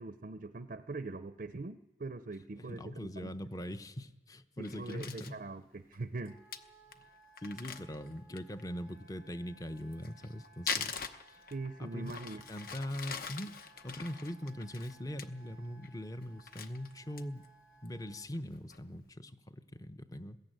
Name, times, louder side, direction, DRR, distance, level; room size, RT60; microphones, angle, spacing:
voice 1, 0.0-3.3 4.6-6.4 11.5-12.4, right 3 dB, 50° right, 11 dB, 0.6 m, -42 dB
voice 2, 2.6-5.4 7.4-11.0 11.3-11.4 11.8-12.1 12.5-13.5 13.8-17.5 17.8-20.4, equal, 20° left, 10 dB, 0.7 m, -41 dB
Crumpling crinkling, 4.6-5.4 5.9-6.0 6.3-6.4 6.5-6.6 6.9-7.0 7.4-8.6 9.8-11.7 12.1-15.3 15.6-15.9 16.2-17.5 17.9-18.0 18.3-18.8, left 6 dB, 55° left, 0.9 m, -42 dB
Wind instrument woodwind instrument, 6.2-18.3, right 3 dB, 75° left, 3.0 m, -62 dB
21.0 x 14.5 x 9.1 m, 1.1 s
head